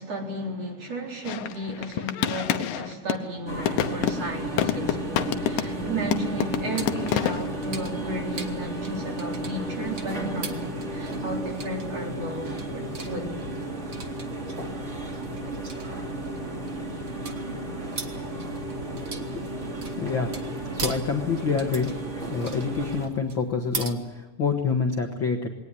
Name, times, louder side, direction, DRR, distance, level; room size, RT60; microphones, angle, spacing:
voice 1, 0.0-13.5, right 1 dB, 45° right, 0 dB, 4.9 m, -34 dB
sound 1, 1.2-3.3 3.7-5.8 6.1-7.5, left 10 dB, 80° left, 2.6 m, -28 dB
sound 2, 3.5-23.1, right 1 dB, 20° right, 2.5 m, -33 dB
sound 3, 6.8-23.9, right 4 dB, 65° right, 0.8 m, -40 dB
voice 2, 20.0-20.3 20.7-21.9 22.3-25.5, left 5 dB, 50° left, 4 dB, 1.6 m, -27 dB
21.5 x 18.5 x 9.8 m, 1.1 s
omnidirectional pair, 4.1 m